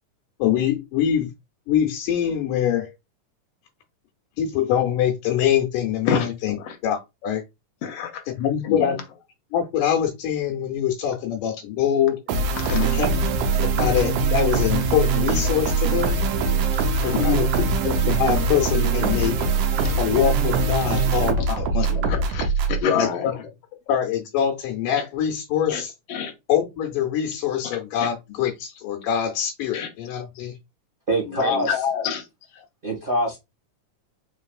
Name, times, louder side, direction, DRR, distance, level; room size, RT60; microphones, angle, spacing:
voice 1, 0.4-1.3 1.7-2.9 4.4-6.6 6.8-7.4 8.4-9.0 9.5-12.2 12.7-16.2 17.0-17.5 17.8-19.4 20.0-21.9 23.0-23.3 23.9-25.9 26.5-30.5, left 9 dB, 90° left, 2.3 m, -24 dB
voice 2, 6.1-6.8 7.8-8.2 8.6-9.0 12.5-13.0 16.7-17.6 19.8-19.9 20.9-21.1 21.4-21.5 21.8-23.4 25.7-25.8 26.1-26.3 28.0-28.1 29.7-29.9 31.3-32.3, left 7 dB, 70° left, 1.6 m, -28 dB
sound 1, 12.3-22.8, right 4 dB, 75° right, 2.0 m, -22 dB
voice 3, 31.1-31.7 32.8-33.4, equal, 40° right, 0.7 m, -23 dB
5.5 x 3.3 x 2.3 m
omnidirectional pair, 3.7 m